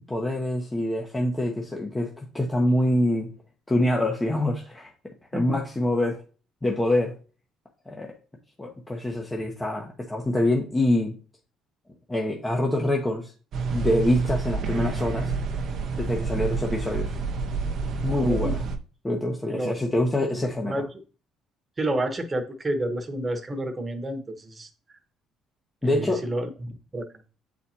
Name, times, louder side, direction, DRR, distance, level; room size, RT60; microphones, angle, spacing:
voice 1, 0.1-3.3 3.7-4.9 5.3-6.2 6.6-7.1 7.9-8.1 8.6-11.2 12.1-13.3 13.7-15.3 16.0-17.1 18.0-18.6 19.0-20.8 25.8-26.2, left 1 dB, 15° left, 0 dB, 1.1 m, -25 dB
sound 1, 13.5-18.8, right 4 dB, 60° right, 0.7 m, -28 dB
voice 2, 18.1-18.6 19.5-20.0 20.3-20.9 21.8-24.7 25.8-27.1, right 1 dB, 25° right, 6 dB, 1.2 m, -30 dB
8.0 x 4.2 x 2.9 m, 0.37 s
supercardioid pair, 80°, 0 cm